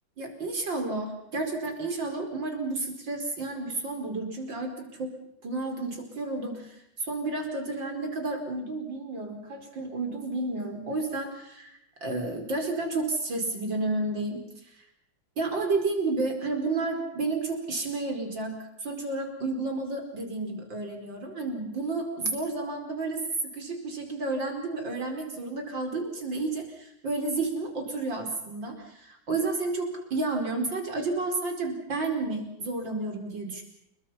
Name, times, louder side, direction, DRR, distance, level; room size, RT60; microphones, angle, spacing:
voice 1, 0.2-5.1 5.4-6.8 7.1-11.7 12.0-14.4 15.4-18.5 18.8-23.2 23.5-33.6, right 3 dB, 65° right, 4 dB, 5.5 m, -31 dB
29.5 x 22.0 x 5.8 m, 0.79 s
omnidirectional pair, 2.2 m